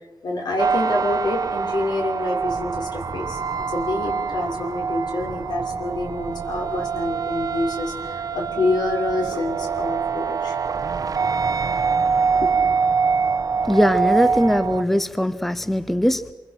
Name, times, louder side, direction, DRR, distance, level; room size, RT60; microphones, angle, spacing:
voice 1, 0.2-3.4 3.7-10.6 11.1-11.2 12.3-12.5, left 2 dB, 70° left, 1 dB, 6.1 m, -27 dB
sound 1, 0.6-14.8, right 5 dB, 55° right, 1.1 m, -24 dB
voice 2, 13.7-16.3, equal, 5° left, 13 dB, 0.8 m, -20 dB
28.0 x 25.0 x 6.0 m, 1.3 s
wide cardioid pair, 125°, 7 cm